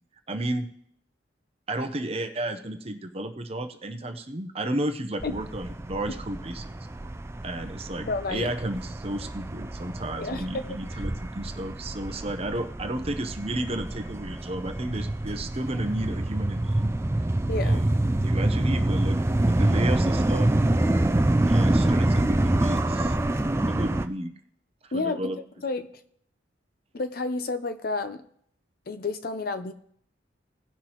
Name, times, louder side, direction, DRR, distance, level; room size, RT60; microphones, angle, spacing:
voice 1, 0.3-0.7 1.7-6.7 7.4-16.9 17.6-17.9 18.2-19.2 19.4-20.5 21.5-23.2 23.7-24.3 24.8-25.4, right 1 dB, 30° right, 7 dB, 0.8 m, -32 dB
sound 1, 5.2-24.1, right 1 dB, 15° right, 0.4 m, -26 dB
voice 2, 8.1-8.5 10.2-10.7 17.5-17.8 24.9-25.3 25.6-25.9 26.9-28.2 28.9-29.7, left 3 dB, 50° left, 10 dB, 0.6 m, -30 dB
17.5 x 5.9 x 3.0 m, 0.66 s
head